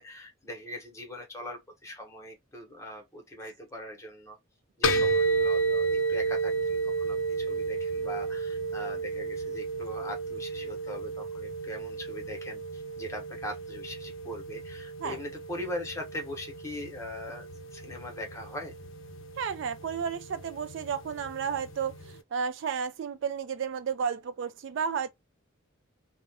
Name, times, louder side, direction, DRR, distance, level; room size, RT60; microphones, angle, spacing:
voice 1, 0.0-4.4 4.8-18.7, left 1 dB, 15° left, 0.8 m, -41 dB
sound 1, 4.8-22.2, right 3 dB, 70° left, 0.5 m, -32 dB
voice 2, 19.4-25.1, right 7 dB, 60° right, 0.3 m, -32 dB
2.4 x 2.1 x 3.3 m
head